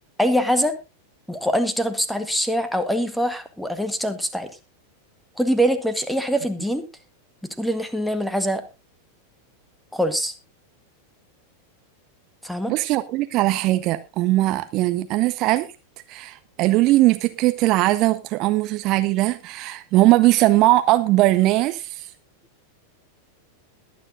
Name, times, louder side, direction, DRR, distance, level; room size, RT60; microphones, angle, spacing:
voice 1, 0.2-0.8 1.3-4.5 5.4-6.8 7.4-8.6 9.9-10.3 12.4-12.7, equal, ahead, 1.4 m, -23 dB
voice 2, 12.7-15.7 16.1-22.1, right 17 dB, 40° right, 0.6 m, -20 dB
21.5 x 9.3 x 2.6 m
figure-of-eight pair, 90°, 0 cm